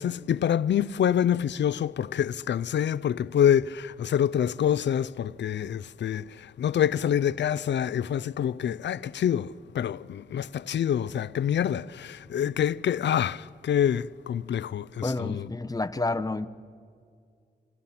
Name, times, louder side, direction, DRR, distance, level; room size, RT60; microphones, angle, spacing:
voice 1, 0.0-15.5, left 9 dB, 90° left, 0.5 m, -26 dB
voice 2, 15.0-16.5, left 2 dB, 20° left, 1.0 m, -29 dB
28.0 x 26.5 x 5.8 m
wide cardioid pair, 80°, 18 cm